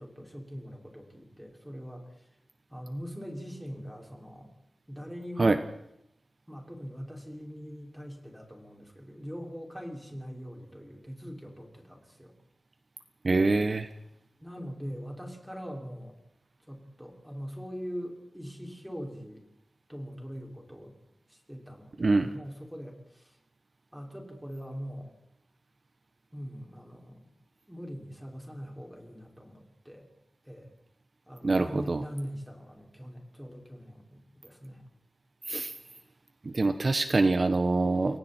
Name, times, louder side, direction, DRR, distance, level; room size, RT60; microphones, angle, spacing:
voice 1, 0.0-2.3 2.7-4.5 4.9-5.6 6.5-12.3 14.4-16.2 16.7-19.5 19.9-20.9 21.3-23.4 23.9-25.1 26.3-27.3 27.7-30.1 30.4-30.7 31.3-34.8 36.5-36.8, equal, 5° right, 0 dB, 6.1 m, -42 dB
voice 2, 13.2-13.9 22.0-22.3 31.4-32.0 35.4-35.7 36.4-38.2, right 3 dB, 50° right, 9 dB, 1.2 m, -25 dB
30.0 x 22.5 x 4.6 m, 0.81 s
wide cardioid pair, 85°, 0 cm